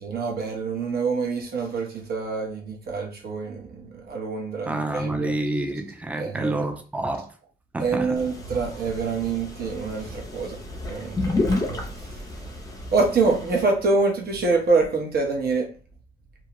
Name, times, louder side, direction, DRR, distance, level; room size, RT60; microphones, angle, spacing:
voice 1, 0.0-5.4 6.2-6.6 7.8-12.2 12.9-15.7, right 4 dB, 50° right, 1.0 m, -26 dB
voice 2, 4.7-7.3 7.7-8.2, right 2 dB, 5° right, 0.4 m, -28 dB
sound 1, 8.2-13.6, left 2 dB, 20° left, 0.8 m, -31 dB
2.6 x 2.3 x 3.0 m
cardioid pair, 90°, 20 cm